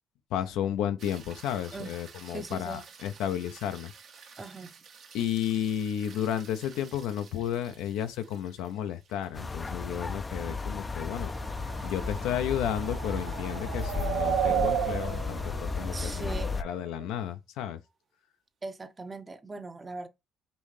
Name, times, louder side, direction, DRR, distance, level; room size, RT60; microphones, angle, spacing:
voice 1, 0.3-3.9 5.1-11.3 11.8-17.8, left 10 dB, 85° left, 0.6 m, -32 dB
sound 1, 1.0-13.4 17.9-18.0, right 6 dB, 65° right, 1.1 m, -53 dB
voice 2, 2.3-2.8 4.4-4.8 15.9-16.6 18.6-20.1, right 3 dB, 25° right, 0.7 m, -40 dB
sound 2, 9.3-16.6, left 3 dB, 25° left, 0.4 m, -34 dB
sound 3, 11.2-17.0, right 9 dB, 85° right, 0.5 m, -33 dB
5.4 x 2.7 x 3.2 m
supercardioid pair, 70°, 0 cm